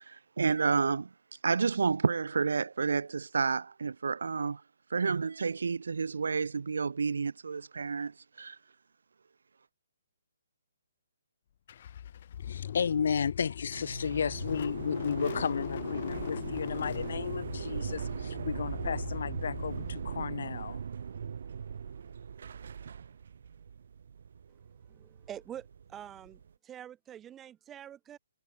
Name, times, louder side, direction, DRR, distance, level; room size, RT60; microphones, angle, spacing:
voice 1, 0.1-1.1 1.4-4.6 4.9-8.1 8.4-8.6, right 5 dB, 80° right, 1.2 m, -30 dB
Car / Engine starting, 11.7-20.4, left 10 dB, 35° left, 5.0 m, -40 dB
voice 2, 12.4-20.8, left 6 dB, 50° left, 4.9 m, -33 dB
sound 1, 13.7-26.5, right 7 dB, 50° right, 2.2 m, -40 dB
voice 3, 24.9-28.2, right 10 dB, 10° right, 2.2 m, -46 dB
hypercardioid pair, 175°, 0 cm